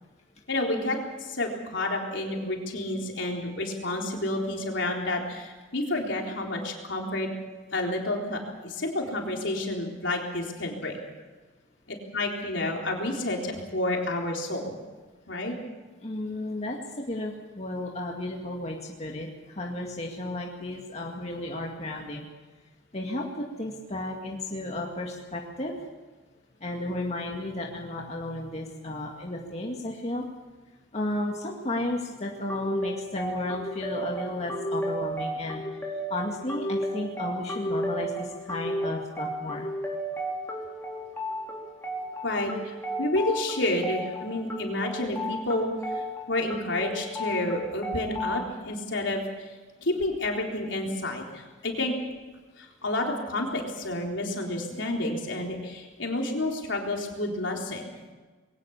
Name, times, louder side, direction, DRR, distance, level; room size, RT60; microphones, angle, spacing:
voice 1, 0.5-7.3 7.7-11.0 12.1-14.7 15.3-15.6 42.2-49.5 49.8-51.9 52.6-57.9, left 1 dB, 70° left, 1 dB, 3.9 m, -30 dB
voice 2, 16.0-22.2 22.9-25.9 26.6-30.2 30.9-35.6 36.1-39.7, left 1 dB, 35° left, 0 dB, 2.1 m, -33 dB
sound 1, 32.5-48.5, equal, 10° left, 3.8 m, -33 dB
22.0 x 18.0 x 7.2 m, 1.3 s
head